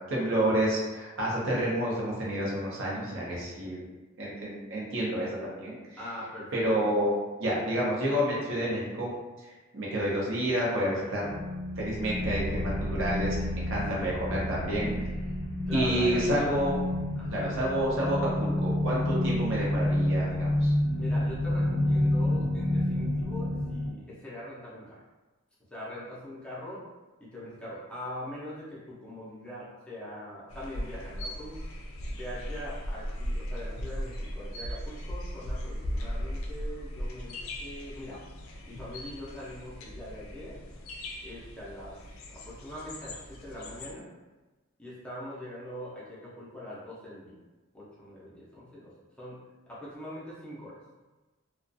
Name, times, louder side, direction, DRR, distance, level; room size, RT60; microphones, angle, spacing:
voice 1, 0.1-3.8 4.2-5.8 6.5-7.1 7.4-9.1 9.7-11.3 11.8-14.9 15.7-16.8 17.3-20.7, right 1 dB, 65° right, -5 dB, 0.7 m, -29 dB
voice 2, 6.0-6.9 13.7-14.1 14.7-15.0 15.3-15.4 15.7-16.7 17.2-17.6 21.0-25.0 25.7-26.8 27.2-31.6 32.1-38.2 38.7-40.6 41.2-42.0 42.3-44.1 44.8-47.3 47.7-48.9 49.2-50.8, left 1 dB, 5° left, -9 dB, 0.6 m, -42 dB
sound 1, 11.2-23.9, left 1 dB, 90° right, 0.9 m, -29 dB
sound 2, 30.5-43.9, equal, 70° left, 0.4 m, -38 dB
2.4 x 2.2 x 2.5 m, 1.2 s
head